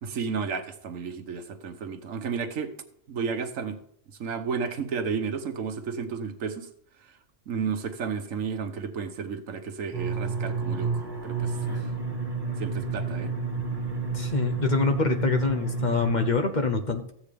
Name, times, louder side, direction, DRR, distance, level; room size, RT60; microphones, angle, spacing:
voice 1, 0.0-2.7 3.1-3.8 4.2-6.7 7.5-11.9 12.6-13.3, right 6 dB, 85° right, 1.4 m, -32 dB
sound 1, 9.9-16.3, right 4 dB, 15° right, 2.1 m, -30 dB
voice 2, 14.1-17.1, left 4 dB, 40° left, 0.9 m, -25 dB
14.5 x 8.6 x 3.5 m
omnidirectional pair, 1.3 m